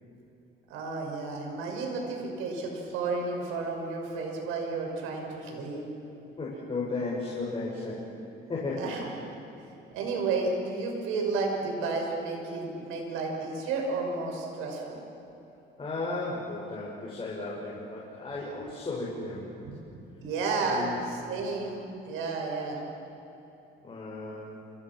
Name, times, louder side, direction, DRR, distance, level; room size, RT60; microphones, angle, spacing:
voice 1, 0.7-5.9 8.8-9.1 9.9-15.0 19.6-22.8, right 3 dB, 90° right, 1 dB, 6.4 m, -32 dB
voice 2, 6.4-8.1 8.5-8.9 15.8-19.5 20.6-21.0 23.8-24.6, left 3 dB, 25° left, -5 dB, 6.6 m, -34 dB
29.5 x 29.0 x 6.2 m, 2.8 s
cardioid pair, 120°, 20 cm